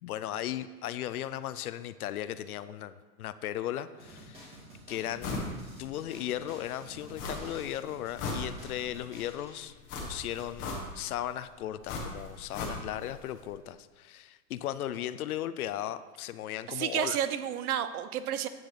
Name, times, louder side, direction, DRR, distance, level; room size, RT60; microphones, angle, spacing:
voice 1, 0.0-4.5 4.9-5.3 5.8-9.7 10.0-10.7 10.9-17.2, left 12 dB, 70° left, 14 dB, 0.5 m, -36 dB
sound 1, 4.0-9.6, right 1 dB, 15° right, 1.7 m, -50 dB
sound 2, 5.2-5.5 5.9-6.0 7.1-7.7 8.0-8.9 9.9-11.1 11.8-13.1 13.4-13.5, left 3 dB, 25° left, 1.3 m, -37 dB
voice 2, 16.7-18.5, right 10 dB, 70° right, 12 dB, 0.8 m, -31 dB
8.7 x 6.2 x 5.0 m, 1.3 s
supercardioid pair, 165°, 46 cm